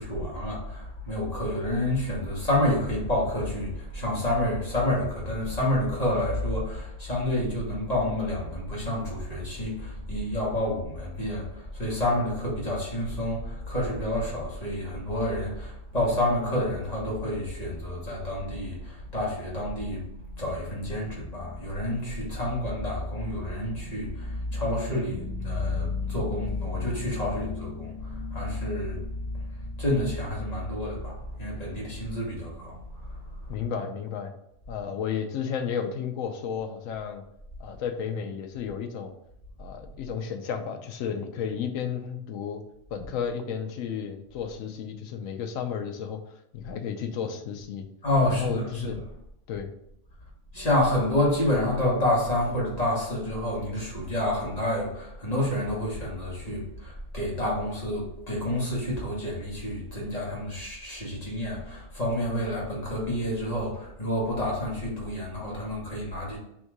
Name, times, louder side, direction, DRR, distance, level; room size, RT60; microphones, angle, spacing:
voice 1, 0.0-20.0 20.4-32.8 48.0-49.0 50.5-66.4, left 1 dB, 30° left, -4 dB, 1.3 m, -29 dB
voice 2, 33.5-34.3 34.7-37.2 37.6-39.1 39.6-42.6 42.9-46.2 46.5-47.9 48.2-49.0 49.5-49.7, left 7 dB, 85° left, 6 dB, 1.0 m, -32 dB
3.6 x 2.7 x 4.6 m, 0.78 s
omnidirectional pair, 1.4 m